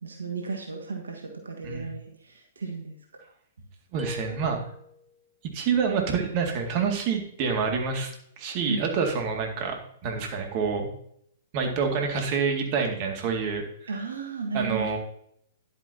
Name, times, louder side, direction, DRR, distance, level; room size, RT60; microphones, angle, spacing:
voice 1, 0.0-3.3 8.6-8.9 13.9-14.9, right 4 dB, 80° right, 2 dB, 1.5 m, -34 dB
voice 2, 3.9-4.6 5.5-8.1 8.4-10.9 11.5-13.9 14.5-15.0, right 5 dB, 45° right, 3 dB, 2.2 m, -27 dB
sound 1, 4.0-5.2, equal, 15° right, 1.0 m, -41 dB
10.5 x 9.2 x 2.8 m, 0.68 s
figure-of-eight pair, 110°, 0 cm